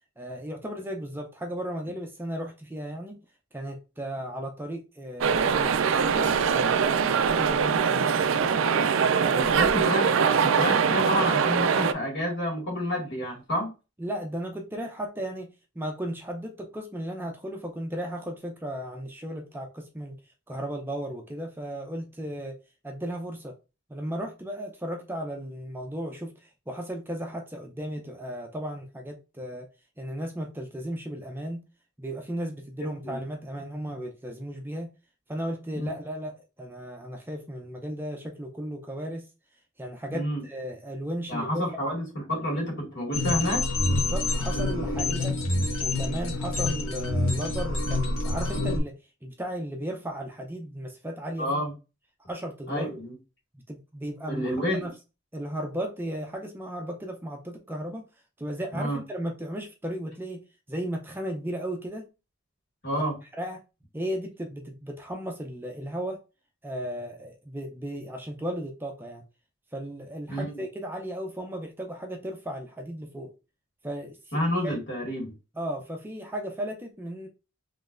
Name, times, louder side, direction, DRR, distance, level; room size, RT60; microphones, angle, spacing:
voice 1, 0.2-3.2 3.5-8.6 9.2-9.7 14.0-20.2 20.5-22.6 22.8-23.6 23.9-29.7 30.0-31.6 32.0-34.9 35.3-39.3 39.8-41.9 43.9-45.4 45.8-51.5 52.3-53.0 53.7-54.5 54.8-54.9 55.3-58.0 58.4-62.1 62.9-63.0 63.4-63.6 63.9-66.2 66.6-69.2 69.7-73.3 73.8-74.8 75.6-77.3, equal, 10° right, 0.5 m, -35 dB
sound 1, 5.2-11.9, right 6 dB, 65° right, 0.4 m, -23 dB
voice 2, 9.3-13.7 32.8-33.2 35.7-35.9 40.1-40.4 41.3-43.7 51.4-51.7 52.7-53.1 54.3-54.8 58.7-59.0 62.8-63.1 70.3-70.6 74.3-75.3, equal, 60° left, 2.1 m, -29 dB
sound 2, 43.1-48.8, left 2 dB, 80° left, 1.2 m, -27 dB
3.9 x 3.2 x 2.5 m
head